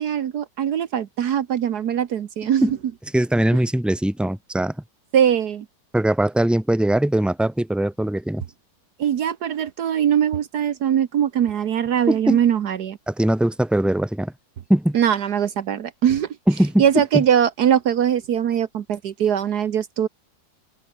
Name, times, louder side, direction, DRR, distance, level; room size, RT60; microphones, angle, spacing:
voice 1, 0.0-2.8 5.1-5.6 9.0-13.0 14.9-16.3 16.8-20.1, right 9 dB, 70° right, 1.5 m, -21 dB
voice 2, 3.1-4.8 5.9-8.4 12.1-12.4 13.1-14.3 14.7-15.0 16.5-17.2, right 1 dB, ahead, 2.0 m, -21 dB
open air
omnidirectional pair, 1.8 m